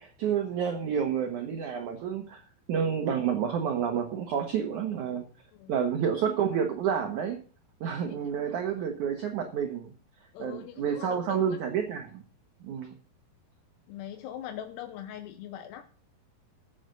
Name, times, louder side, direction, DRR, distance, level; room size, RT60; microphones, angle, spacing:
voice 1, 0.0-2.4 2.7-5.2 5.7-7.4 7.8-9.9 10.4-12.2 12.6-12.9, right 7 dB, 65° right, 4 dB, 2.1 m, -29 dB
voice 2, 10.3-11.6 13.9-15.9, left 11 dB, 85° left, 6 dB, 2.9 m, -41 dB
14.0 x 7.6 x 6.7 m, 0.41 s
omnidirectional pair, 4.8 m